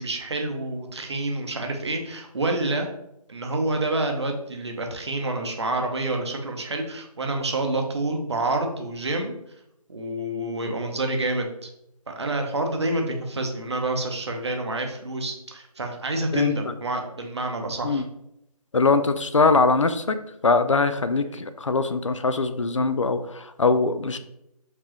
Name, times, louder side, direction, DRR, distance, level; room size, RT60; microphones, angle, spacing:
voice 1, 0.0-2.9 3.3-9.3 9.9-11.7 12.1-18.0, right 2 dB, 45° right, 3 dB, 0.7 m, -28 dB
voice 2, 16.3-16.7 17.8-18.0 18.7-20.2 20.4-24.2, left 4 dB, 50° left, 11 dB, 0.4 m, -22 dB
4.9 x 3.5 x 2.9 m, 0.80 s
figure-of-eight pair, 165°, 20 cm